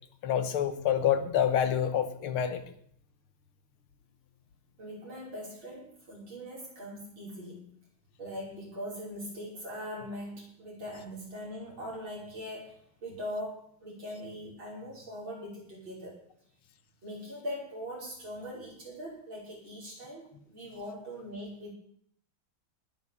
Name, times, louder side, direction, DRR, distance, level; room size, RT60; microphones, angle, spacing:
voice 1, 0.2-2.6, left 9 dB, 85° left, 10 dB, 2.0 m, -27 dB
voice 2, 4.8-7.7 8.2-16.2 17.0-21.7, equal, 65° right, -4 dB, 6.3 m, -41 dB
19.5 x 6.5 x 7.2 m, 0.65 s
omnidirectional pair, 2.3 m